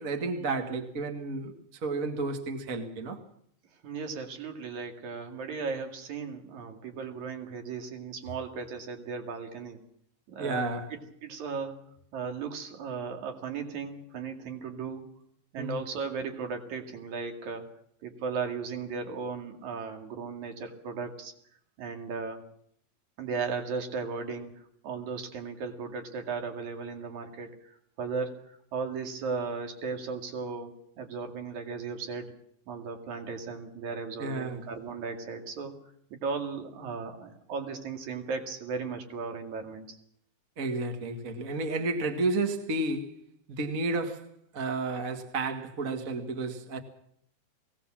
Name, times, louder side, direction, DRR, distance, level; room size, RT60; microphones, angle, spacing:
voice 1, 0.0-1.5 1.8-3.2 10.4-10.9 15.6-15.8 34.2-34.6 40.6-43.2 43.5-46.8, right 3 dB, 35° right, 5 dB, 1.5 m, -31 dB
voice 2, 3.8-9.8 10.3-10.7 11.2-15.1 15.5-17.7 18.0-21.3 21.8-22.4 23.2-24.5 24.8-27.5 28.0-28.4 28.7-32.3 32.7-35.8 36.1-40.0, right 5 dB, 55° right, 5 dB, 3.4 m, -36 dB
21.0 x 17.5 x 7.5 m, 0.68 s
omnidirectional pair, 4.1 m